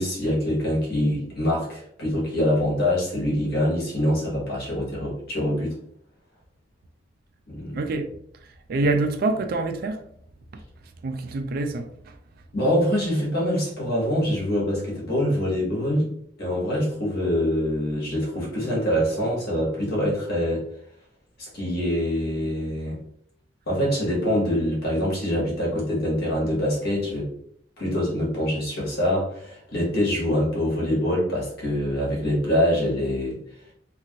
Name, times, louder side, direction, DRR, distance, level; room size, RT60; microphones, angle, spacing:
voice 1, 0.0-5.7 7.5-7.8 8.8-8.9 12.5-16.1 16.4-20.6 21.4-23.0 23.7-27.3 27.8-33.4, equal, 60° left, 1.2 m, -24 dB
voice 2, 7.7-8.1 8.7-10.0 11.0-11.9, right 2 dB, 55° right, 0.3 m, -25 dB
2.8 x 2.5 x 2.8 m
head